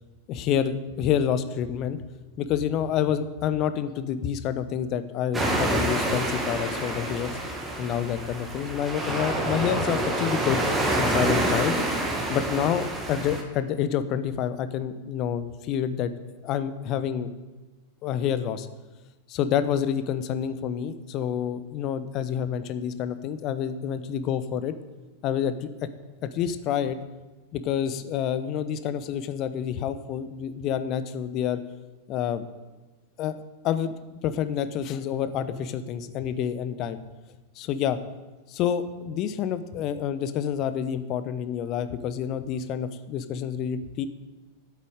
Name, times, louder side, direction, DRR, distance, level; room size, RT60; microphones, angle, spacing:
voice 1, 0.3-2.0 2.4-7.4 7.8-10.6 10.9-11.7 12.3-16.1 16.4-17.3 18.0-18.7 19.3-24.7 25.2-25.7 26.3-27.0 27.5-31.6 32.1-32.4 33.2-33.4 33.6-33.9 34.2-37.0 37.6-38.0 38.5-44.1, left 9 dB, 40° left, 12 dB, 0.8 m, -28 dB
sound 1, 5.3-13.4, right 1 dB, 15° right, 2.0 m, -27 dB
8.4 x 8.4 x 8.9 m, 1.2 s
figure-of-eight pair, 90°, 0 cm